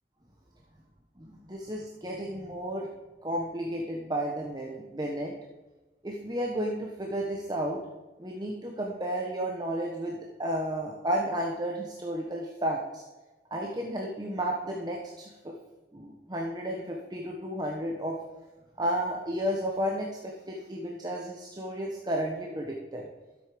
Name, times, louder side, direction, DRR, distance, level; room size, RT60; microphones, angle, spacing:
voice 1, 1.2-2.9 3.2-5.3 6.0-7.8 8.2-13.0 13.5-15.5 15.9-18.2 18.8-23.1, right 1 dB, 25° right, -1 dB, 1.2 m, -32 dB
13.0 x 8.1 x 5.2 m, 1.2 s
head